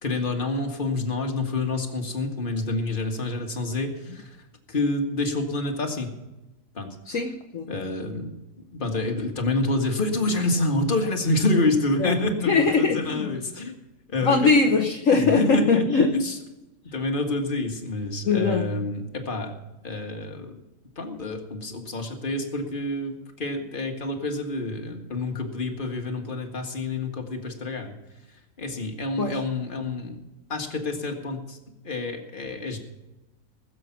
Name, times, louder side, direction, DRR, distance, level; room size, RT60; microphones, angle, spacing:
voice 1, 0.0-4.4 4.7-6.1 6.7-7.0 7.7-8.4 8.7-13.8 14.1-14.4 15.1-15.8 16.1-16.4 16.9-19.5 19.8-20.6 21.0-28.0 28.6-30.2 30.5-31.6 31.8-32.8, left 2 dB, 30° left, 3 dB, 1.8 m, -28 dB
voice 2, 7.1-7.7 12.0-13.3 14.2-16.1 18.2-18.7 29.2-29.4, left 4 dB, 55° left, 3 dB, 1.3 m, -21 dB
20.0 x 7.4 x 5.9 m, 1.0 s
omnidirectional pair, 1.8 m